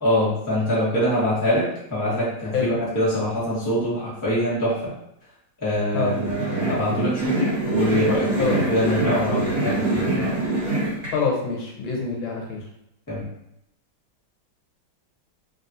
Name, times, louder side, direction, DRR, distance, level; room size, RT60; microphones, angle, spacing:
voice 1, 0.0-4.9 5.6-10.4 13.1-13.2, equal, 15° left, -8 dB, 0.7 m, -24 dB
sound 1, 5.9-11.1, right 2 dB, 50° right, 1.6 m, -25 dB
voice 2, 11.1-12.6, left 5 dB, 75° left, -1 dB, 1.4 m, -25 dB
3.4 x 2.3 x 2.6 m, 0.79 s
omnidirectional pair, 2.2 m